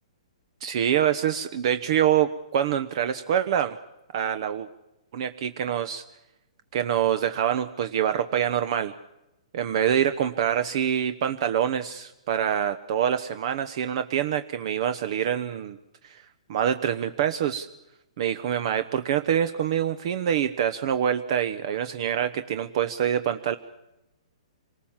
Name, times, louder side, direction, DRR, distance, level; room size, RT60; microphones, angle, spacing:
voice 1, 0.6-3.8 4.1-4.7 5.1-6.0 6.7-8.9 9.5-15.8 16.0-16.2 16.5-17.7 18.2-23.6, right 9 dB, 50° right, 10 dB, 1.0 m, -25 dB
27.0 x 19.5 x 7.4 m, 0.93 s
hypercardioid pair, 145°, 4 cm